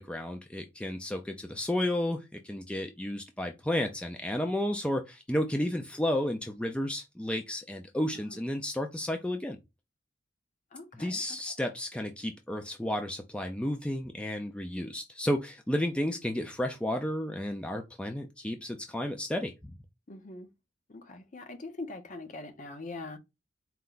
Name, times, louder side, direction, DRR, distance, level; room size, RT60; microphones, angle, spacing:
voice 1, 0.0-9.6 10.9-19.7, left 1 dB, 5° left, 0.4 m, -32 dB
voice 2, 20.1-20.5 20.9-23.2, left 2 dB, 40° left, 0.7 m, -42 dB
4.4 x 2.2 x 3.8 m
head